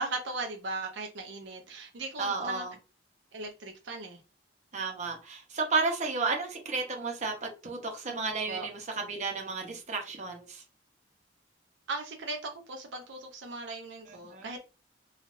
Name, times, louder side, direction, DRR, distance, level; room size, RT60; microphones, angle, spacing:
voice 1, 0.0-2.6 3.3-4.2 8.5-8.7 11.9-14.6, right 3 dB, 75° right, 0.6 m, -37 dB
voice 2, 2.2-2.7 4.7-10.6 14.1-14.5, right 4 dB, 40° right, 0.8 m, -33 dB
3.2 x 2.4 x 2.5 m
head